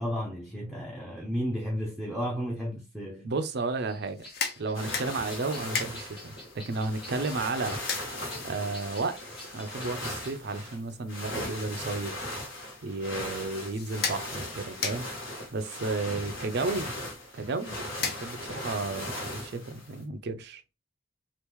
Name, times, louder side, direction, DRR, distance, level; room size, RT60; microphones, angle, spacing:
voice 1, 0.0-3.3, equal, ahead, 0.6 m, -33 dB
voice 2, 3.2-4.3 4.6-7.8 8.4-12.2 12.8-15.1 15.5-16.9 17.3-20.6, right 3 dB, 55° right, 0.4 m, -33 dB
sound 1, 3.9-10.3, left 2 dB, 25° left, 1.3 m, -49 dB
sound 2, 4.0-18.7, left 5 dB, 50° left, 0.6 m, -40 dB
sound 3, 4.7-20.0, left 1 dB, 75° left, 1.3 m, -38 dB
3.0 x 2.5 x 3.5 m
head